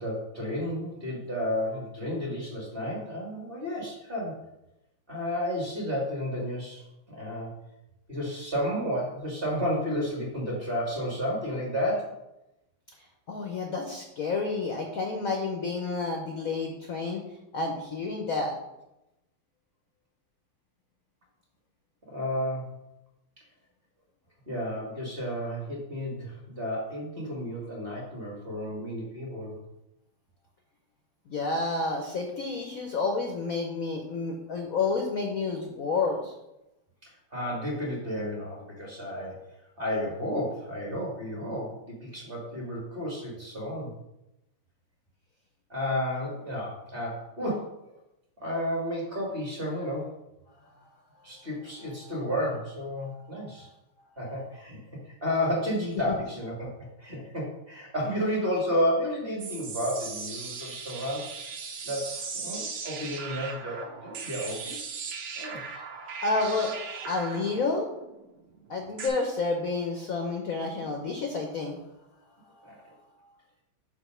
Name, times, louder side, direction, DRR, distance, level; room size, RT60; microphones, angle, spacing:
voice 1, 0.0-4.4 5.1-6.8 7.1-7.5 8.1-12.1 22.1-22.7 24.5-29.6 37.0-39.4 39.8-43.9 45.7-47.8 48.4-50.1 51.2-53.7 54.2-56.7 57.0-61.3 61.8-64.9 65.4-65.6 72.6-72.8, equal, 30° right, -2 dB, 1.5 m, -32 dB
voice 2, 13.3-17.2 17.5-18.5 31.3-36.3 56.1-56.2 65.7-65.8 66.2-66.7 67.1-67.9 68.7-71.8, left 3 dB, 65° left, 2 dB, 0.9 m, -30 dB
sound 1, 59.4-69.1, right 5 dB, 75° right, 1.8 m, -38 dB
5.1 x 4.3 x 6.0 m, 0.90 s
omnidirectional pair, 2.4 m